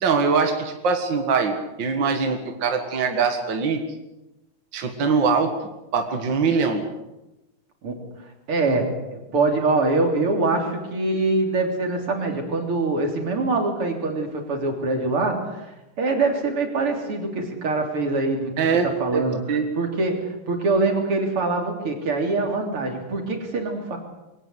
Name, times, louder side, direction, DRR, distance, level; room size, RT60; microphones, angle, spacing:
voice 1, 0.0-3.8 4.7-5.5 5.9-6.8 18.6-18.9 19.1-19.6, right 5 dB, 60° right, 5 dB, 2.4 m, -22 dB
voice 2, 8.5-24.0, right 3 dB, 85° right, 3 dB, 4.2 m, -24 dB
23.0 x 18.0 x 8.1 m, 0.97 s
omnidirectional pair, 2.4 m